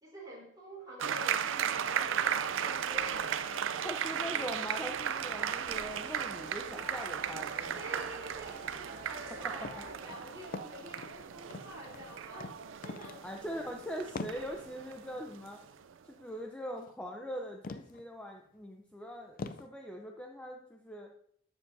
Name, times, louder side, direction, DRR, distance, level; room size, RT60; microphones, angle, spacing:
voice 1, 0.0-3.9 7.8-12.6 12.8-13.3, equal, 20° right, -3 dB, 3.8 m, -48 dB
sound 1, 1.0-15.9, right 8 dB, 80° right, 0.5 m, -36 dB
sound 2, 1.3-9.9, right 1 dB, 50° right, 3.1 m, -52 dB
voice 2, 3.8-7.8 9.8-9.9 13.2-15.6 16.0-21.1, equal, 5° left, 1 dB, 0.7 m, -42 dB
sound 3, 9.6-9.8 10.1-11.2 11.5-12.1 12.4-12.6 12.8-13.2 13.5-13.7 14.1-14.4 16.8-16.9 17.6-18.0 18.5-18.6 19.4-19.7, left 3 dB, 45° left, 0.4 m, -42 dB
13.0 x 7.2 x 2.7 m, 0.66 s
head